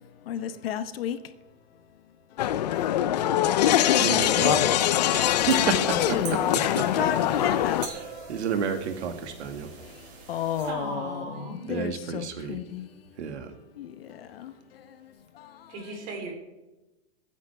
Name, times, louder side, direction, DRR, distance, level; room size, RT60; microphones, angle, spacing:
voice 1, 0.3-1.2 5.8-7.8 10.3-12.9 13.8-14.5, left 9 dB, 60° left, 1.0 m, -32 dB
sound 1, 2.4-7.9, left 12 dB, 40° left, 0.5 m, -23 dB
voice 2, 3.9-4.8 5.1-6.9 7.4-7.5 7.8-9.7 11.7-12.6 13.2-13.5, right 6 dB, 75° right, 2.0 m, -31 dB
sound 2, 5.5-10.7, right 4 dB, 50° right, 4.3 m, -42 dB
voice 3, 10.6-11.7 15.7-16.3, right 3 dB, 25° right, 3.5 m, -37 dB
24.5 x 9.6 x 3.5 m
supercardioid pair, 175°, 34 cm